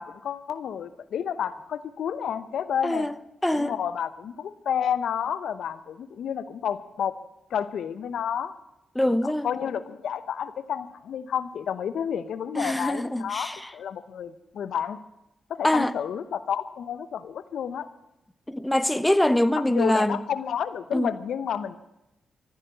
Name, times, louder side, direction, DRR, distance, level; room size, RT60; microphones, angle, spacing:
voice 1, 0.0-3.1 3.5-7.1 7.5-8.5 9.2-15.0 15.5-17.9 19.6-21.8, left 8 dB, 70° left, 0.8 m, -30 dB
voice 2, 2.8-3.1 3.4-3.7 8.9-9.5 12.5-13.7 15.6-15.9 18.5-20.2 20.9-21.1, left 1 dB, 10° left, 0.9 m, -24 dB
14.5 x 11.0 x 9.1 m
hypercardioid pair, 40°, 0 cm